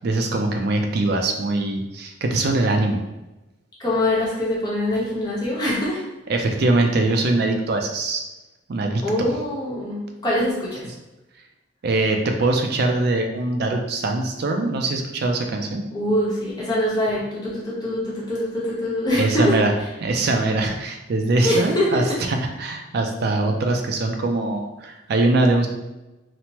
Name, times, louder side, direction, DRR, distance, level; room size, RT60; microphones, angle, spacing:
voice 1, 0.0-3.0 6.3-8.2 8.7-9.0 11.8-15.9 19.2-19.7 20.0-22.0 22.3-25.7, right 2 dB, 55° right, 3 dB, 0.4 m, -22 dB
voice 2, 3.8-6.0 9.0-10.9 15.9-19.5 21.4-22.0, left 1 dB, 20° left, -7 dB, 0.8 m, -23 dB
3.0 x 2.1 x 2.8 m, 1.0 s
head